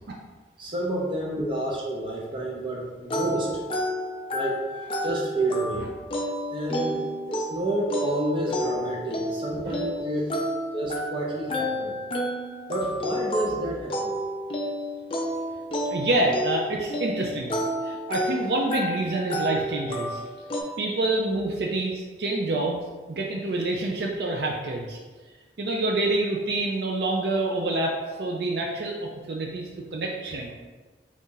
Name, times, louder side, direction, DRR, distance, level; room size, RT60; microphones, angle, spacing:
voice 1, 0.6-3.5 4.3-4.6 5.0-5.9 6.5-7.0 7.3-10.3 10.7-11.9 12.7-14.1, right 1 dB, 30° right, -3 dB, 0.7 m, -29 dB
sound 1, 3.1-20.6, equal, 30° left, 0.4 m, -31 dB
voice 2, 15.9-17.5 17.8-20.2 20.8-22.8 23.1-25.0 25.6-29.6 29.9-30.5, right 2 dB, 65° right, -1 dB, 0.4 m, -27 dB
4.0 x 2.4 x 3.7 m, 1.3 s
head